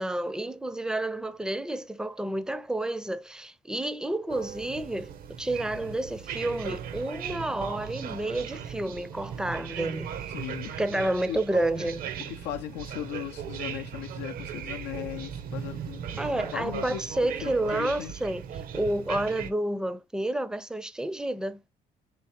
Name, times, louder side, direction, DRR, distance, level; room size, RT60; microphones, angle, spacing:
voice 1, 0.0-5.1 5.4-10.1 10.8-12.0 16.2-18.4 18.7-21.6, right 1 dB, 5° right, 0.5 m, -30 dB
sound 1, 4.3-19.5, right 8 dB, 60° right, 0.6 m, -38 dB
voice 2, 10.3-11.4 12.2-18.1, left 11 dB, 85° left, 0.5 m, -38 dB
4.5 x 3.2 x 2.8 m
cardioid pair, 110°, 17 cm